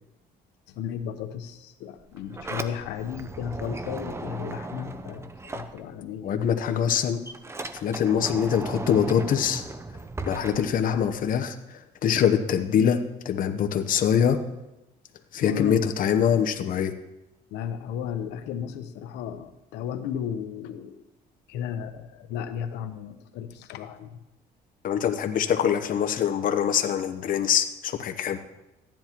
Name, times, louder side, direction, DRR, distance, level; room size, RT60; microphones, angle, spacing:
voice 1, 0.8-6.4 15.4-15.9 17.5-21.0 21.5-24.2, left 8 dB, 90° left, 8 dB, 1.0 m, -34 dB
Sliding door, 2.0-6.3 6.6-11.4, right 2 dB, 15° right, 0.7 m, -37 dB
voice 2, 6.2-7.2 7.7-9.6 10.2-14.4 15.3-16.9 24.8-28.4, left 8 dB, 55° left, 8 dB, 0.9 m, -24 dB
14.5 x 10.5 x 3.0 m, 0.95 s
cardioid pair, 110°, 17 cm